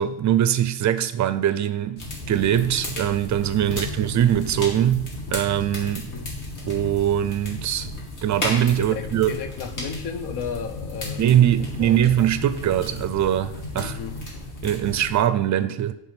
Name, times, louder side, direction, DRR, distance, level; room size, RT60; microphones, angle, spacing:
voice 1, 0.0-6.1 6.7-7.9 8.2-9.3 11.2-13.9 14.6-15.9, right 11 dB, 45° right, 0.4 m, -22 dB
sound 1, 2.0-15.2, left 2 dB, 45° left, 2.5 m, -34 dB
voice 2, 3.5-3.8 6.0-6.3 8.8-12.1 13.7-14.2, left 6 dB, 70° left, 0.8 m, -35 dB
10.5 x 3.5 x 5.8 m
cardioid pair, 170°, 42 cm